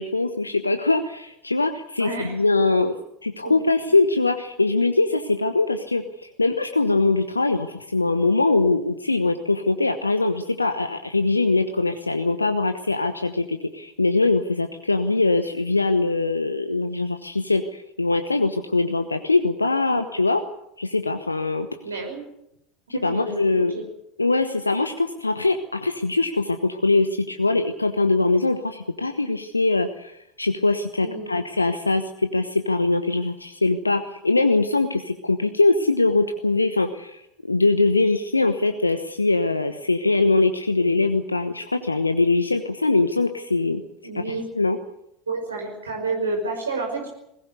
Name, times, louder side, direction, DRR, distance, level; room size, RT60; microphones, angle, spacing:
voice 1, 0.0-2.9 3.2-20.4 20.8-21.7 22.9-23.8 24.2-43.8 44.1-44.8, left 3 dB, 85° left, 8 dB, 1.1 m, -22 dB
voice 2, 2.0-2.3 3.4-3.5 19.9-20.0 21.8-22.2 22.9-23.8 31.0-31.3 44.0-44.4 45.3-47.1, right 3 dB, 80° right, 2 dB, 5.4 m, -30 dB
20.5 x 18.5 x 8.2 m, 0.79 s
figure-of-eight pair, 75°, 0 cm